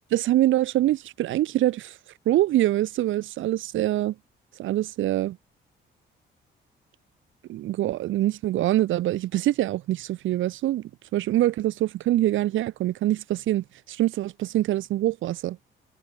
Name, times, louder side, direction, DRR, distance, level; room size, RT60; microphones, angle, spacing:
voice 1, 0.1-1.9 2.3-4.1 4.6-5.4 7.5-15.6, right 14 dB, 75° right, 0.9 m, -24 dB
cardioid pair, 90°, 20 cm